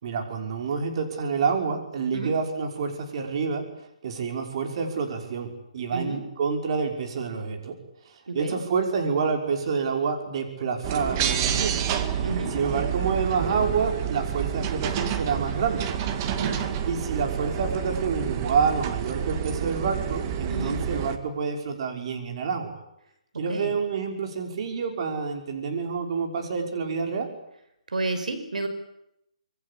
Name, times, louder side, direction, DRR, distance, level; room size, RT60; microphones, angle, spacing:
voice 1, 0.0-3.6 4.0-7.7 8.1-11.9 12.1-12.2 12.5-15.9 16.9-22.8 23.4-27.3, right 5 dB, 45° right, 4 dB, 5.8 m, -28 dB
voice 2, 5.9-6.2 8.3-8.6 12.2-12.6 16.4-16.8 20.5-20.8 23.3-23.7 27.9-28.7, right 2 dB, 85° right, 9 dB, 5.5 m, -31 dB
sound 1, 10.8-21.2, right 9 dB, 30° right, 2.1 m, -29 dB
26.0 x 23.5 x 8.6 m, 0.78 s
hypercardioid pair, 155°, 4 cm